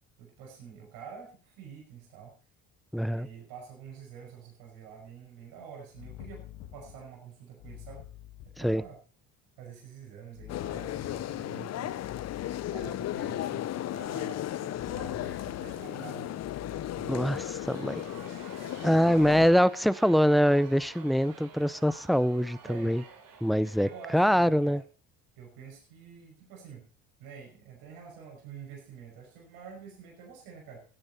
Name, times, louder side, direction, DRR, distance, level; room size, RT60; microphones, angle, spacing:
voice 1, 0.2-2.3 3.0-6.5 6.7-8.1 8.6-9.0 9.6-12.0 12.7-17.4 18.9-19.4 22.6-23.0 23.8-24.8 25.4-26.9 27.2-30.8, right 7 dB, 85° right, 5.9 m, -47 dB
voice 2, 2.9-3.3 8.6-8.8 17.1-17.4 17.7-18.0 18.8-23.0 23.4-24.8, equal, ahead, 0.5 m, -24 dB
sound 1, 5.9-7.2 7.6-8.9 10.3-11.6 12.0-13.3 14.7-16.0 16.4-17.7 19.2-19.5, left 12 dB, 80° left, 2.2 m, -47 dB
sound 2, 10.5-19.5, left 13 dB, 45° left, 0.6 m, -35 dB
Crowd, 17.4-24.7, right 6 dB, 65° right, 3.7 m, -50 dB
16.0 x 10.0 x 4.1 m
supercardioid pair, 90°, 35 cm